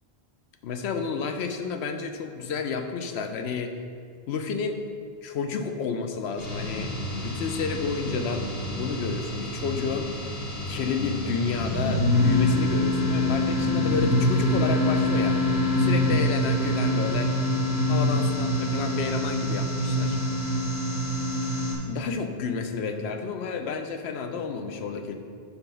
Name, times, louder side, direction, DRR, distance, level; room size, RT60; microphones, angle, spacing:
voice 1, 0.6-3.8 4.3-4.8 5.2-6.9 7.2-10.1 10.7-15.4 15.8-17.3 17.9-20.2 21.9-25.1, left 5 dB, 90° left, 6 dB, 0.9 m, -30 dB
sound 1, 6.4-21.7, left 1 dB, 70° left, 1.5 m, -25 dB
5.8 x 3.9 x 5.6 m, 2.1 s
omnidirectional pair, 1.1 m